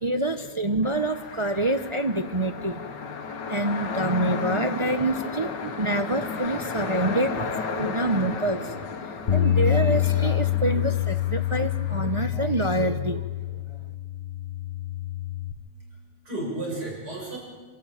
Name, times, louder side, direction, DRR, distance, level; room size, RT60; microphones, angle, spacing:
voice 1, 0.0-3.0 3.5-13.8, right 2 dB, 45° right, 7 dB, 0.3 m, -27 dB
sound 1, 0.8-12.2, left 5 dB, 85° left, 1.9 m, -34 dB
Bass guitar, 9.3-15.5, left 13 dB, 35° left, 1.0 m, -26 dB
voice 2, 15.6-17.4, right 1 dB, 65° right, -2 dB, 6.8 m, -35 dB
26.5 x 13.5 x 9.0 m, 1.5 s
omnidirectional pair, 1.9 m